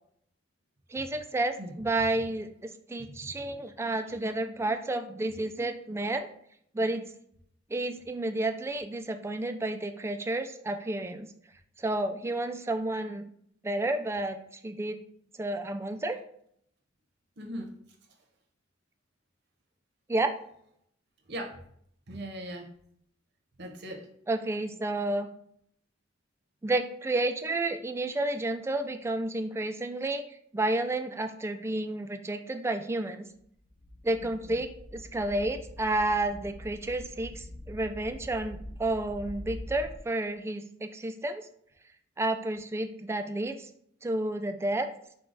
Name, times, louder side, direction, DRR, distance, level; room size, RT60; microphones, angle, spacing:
voice 1, 0.9-6.3 6.7-7.0 7.7-11.3 11.8-13.3 13.6-14.4 14.6-15.0 15.4-16.2 20.1-20.3 24.3-25.3 26.6-30.2 30.5-33.3 34.0-41.5 42.2-43.7 44.0-44.9, right 2 dB, 15° right, 7 dB, 0.3 m, -31 dB
voice 2, 1.6-2.3 3.0-3.3 17.4-17.7 21.3-21.6 22.1-22.7 23.6-24.1 34.2-34.6, right 1 dB, 60° right, 2 dB, 0.9 m, -40 dB
sound 1, 33.4-33.5 33.7-40.0, left 1 dB, 55° left, 0.6 m, -44 dB
4.9 x 2.3 x 3.9 m, 0.68 s
head